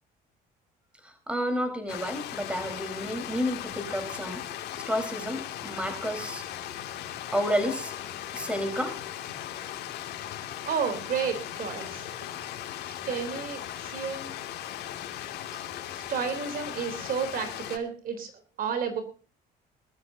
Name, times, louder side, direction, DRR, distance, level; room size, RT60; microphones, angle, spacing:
voice 1, 1.0-4.4 4.9-6.4 7.3-7.9 8.3-9.0, equal, 5° right, 7 dB, 4.4 m, -30 dB
Stream, 1.9-17.8, left 11 dB, 75° left, 2.6 m, -38 dB
voice 2, 10.7-12.1 12.8-14.3 15.5-15.6 15.9-18.3 18.6-19.0, right 6 dB, 60° right, 8 dB, 3.7 m, -31 dB
21.5 x 12.5 x 2.8 m, 0.36 s
cardioid pair, 110°, 17 cm